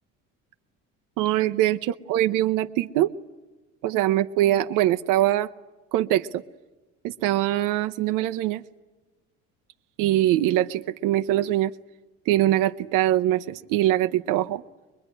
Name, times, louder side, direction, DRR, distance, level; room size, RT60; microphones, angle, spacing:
voice 1, 1.2-3.1 3.8-5.5 5.9-6.4 7.0-8.6 10.0-11.7 12.3-14.6, right 13 dB, 75° right, 7 dB, 0.8 m, -23 dB
23.0 x 22.0 x 9.9 m, 1.2 s
cardioid pair, 145°, 32 cm